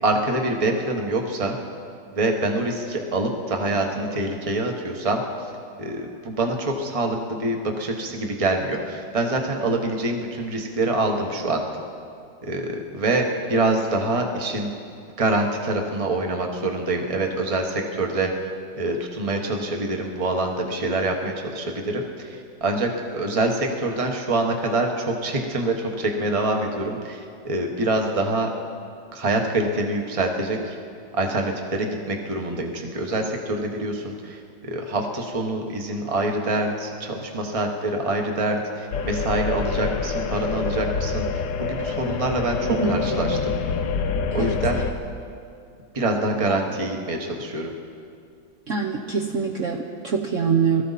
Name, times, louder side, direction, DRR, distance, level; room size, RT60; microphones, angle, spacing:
voice 1, 0.0-1.6 2.1-5.2 5.8-11.6 12.4-14.7 15.2-18.3 18.7-28.5 29.1-30.8 31.1-43.5 44.3-44.8 45.9-47.7, right 2 dB, 20° right, 3 dB, 1.1 m, -25 dB
sound 1, 38.9-44.9, left 5 dB, 75° left, 1.4 m, -26 dB
voice 2, 42.7-43.4 44.4-44.6 48.7-50.8, right 5 dB, 50° right, -1 dB, 1.1 m, -24 dB
23.0 x 14.0 x 4.1 m, 2.4 s
omnidirectional pair, 2.0 m